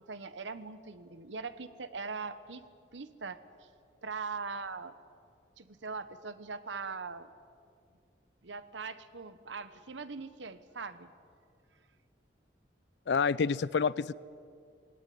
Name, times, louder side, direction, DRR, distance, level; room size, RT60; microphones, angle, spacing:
voice 1, 0.0-2.6 2.9-3.7 4.0-4.9 5.6-7.3 8.4-11.1, right 4 dB, 90° right, 13 dB, 1.1 m, -41 dB
voice 2, 13.1-14.1, left 5 dB, 65° left, 20 dB, 0.4 m, -28 dB
19.5 x 18.5 x 9.4 m, 2.4 s
head